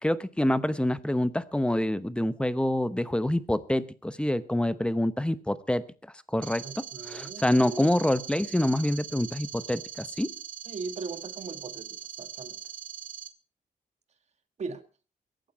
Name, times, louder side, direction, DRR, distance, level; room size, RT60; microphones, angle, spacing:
voice 1, 0.0-5.8 6.3-10.3, left 1 dB, 5° left, 15 dB, 0.9 m, -26 dB
sound 1, 6.4-13.3, right 9 dB, 65° right, 1.5 m, -41 dB
voice 2, 6.6-8.1 10.7-12.6 14.6-14.8, right 4 dB, 50° right, 10 dB, 1.8 m, -39 dB
22.5 x 9.1 x 4.6 m, 0.35 s
cardioid pair, 100°, 15 cm